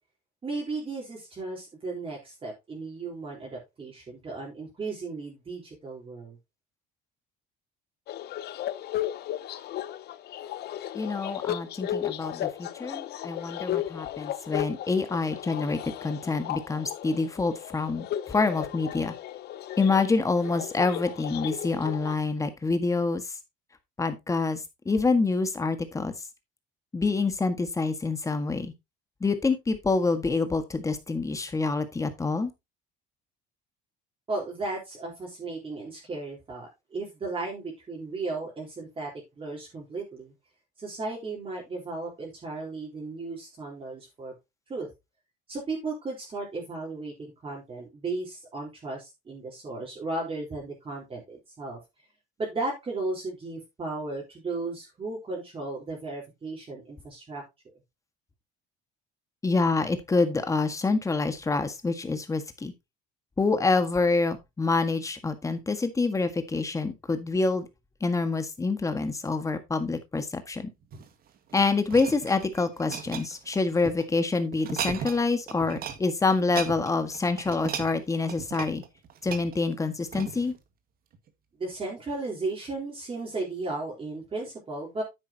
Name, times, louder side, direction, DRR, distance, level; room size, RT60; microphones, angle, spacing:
voice 1, 0.4-6.4 34.3-39.1 39.4-40.3 40.8-44.3 44.7-44.9 45.5-51.8 52.4-57.4 81.6-85.0, right 3 dB, 25° right, 4.1 m, -35 dB
sound 1, 8.1-22.2, left 12 dB, 55° left, 0.8 m, -35 dB
voice 2, 10.9-19.1 19.8-23.2 24.0-24.6 24.8-26.1 26.9-28.7 29.2-32.5 59.4-62.7 63.4-67.7 68.0-70.7 71.5-78.8 79.2-80.5, left 3 dB, 15° left, 1.7 m, -27 dB
sound 2, 70.8-74.1 74.5-75.2 75.5-76.0 76.3-80.6 81.1-81.3, right 8 dB, 50° right, 1.8 m, -37 dB
9.9 x 8.6 x 2.9 m
cardioid pair, 125°, 20 cm